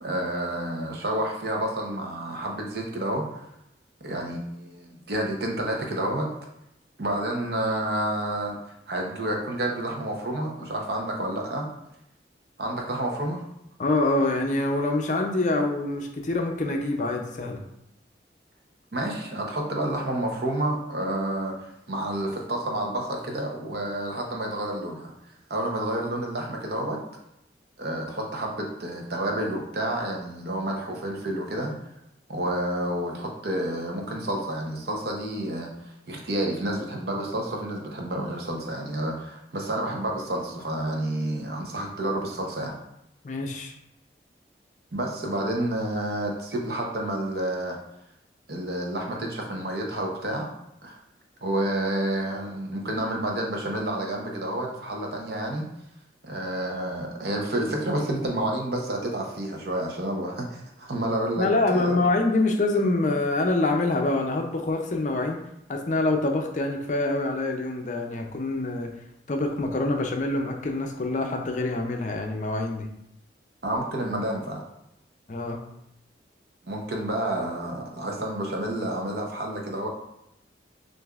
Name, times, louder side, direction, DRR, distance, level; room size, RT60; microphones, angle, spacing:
voice 1, 0.0-3.4 4.0-6.3 7.0-8.6 8.9-11.7 12.6-13.4 18.9-25.1 25.5-27.0 27.8-31.7 32.3-42.8 44.9-47.8 48.5-50.5 50.8-51.0 51.4-55.7 56.2-62.0 73.6-74.6 76.7-79.9, right 1 dB, 60° right, 0 dB, 0.8 m, -29 dB
voice 2, 13.8-17.6 43.2-43.7 61.4-65.4 65.7-68.9 69.3-72.9 75.3-75.6, left 2 dB, 45° left, 3 dB, 0.5 m, -25 dB
6.4 x 2.6 x 2.4 m, 0.80 s
head